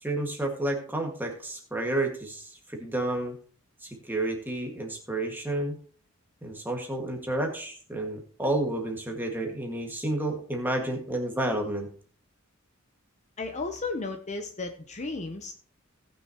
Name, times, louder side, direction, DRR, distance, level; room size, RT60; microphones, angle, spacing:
voice 1, 0.0-3.3 3.8-5.8 6.4-11.9, right 1 dB, 10° right, 1 dB, 1.7 m, -30 dB
voice 2, 13.4-15.5, left 3 dB, 35° left, 5 dB, 0.7 m, -34 dB
18.0 x 6.3 x 2.9 m, 0.43 s
head